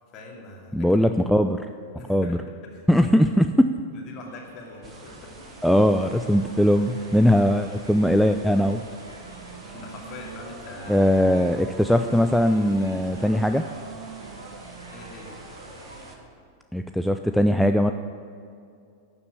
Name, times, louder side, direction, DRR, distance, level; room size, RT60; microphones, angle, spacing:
voice 1, 0.1-1.0 1.9-2.8 3.9-5.3 9.7-11.1 14.9-15.3, left 3 dB, 35° left, 0 dB, 2.4 m, -42 dB
voice 2, 0.7-1.6 2.1-2.4 2.9-3.7 5.6-8.8 9.6-9.7 10.9-13.7 16.7-17.9, equal, ahead, 7 dB, 0.4 m, -20 dB
sound 1, 4.2-16.1, right 1 dB, 80° right, 1.9 m, -45 dB
sound 2, 4.8-16.2, right 3 dB, 20° right, 1.4 m, -48 dB
Wind instrument woodwind instrument, 9.2-15.2, right 7 dB, 40° right, 1.0 m, -44 dB
12.0 x 7.1 x 8.2 m, 2.4 s
figure-of-eight pair, 90°, 0 cm